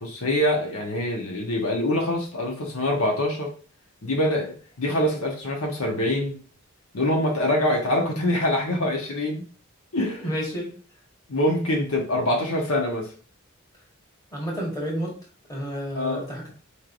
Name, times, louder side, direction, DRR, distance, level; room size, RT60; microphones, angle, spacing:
voice 1, 0.0-3.5 4.0-6.4 6.9-9.4 9.9-10.3 11.3-13.1 15.9-16.3, left 1 dB, 85° left, 1.1 m, -24 dB
voice 2, 10.0-10.7 14.3-15.1 15.5-16.5, equal, 15° left, 1.4 m, -31 dB
4.5 x 3.3 x 2.5 m
head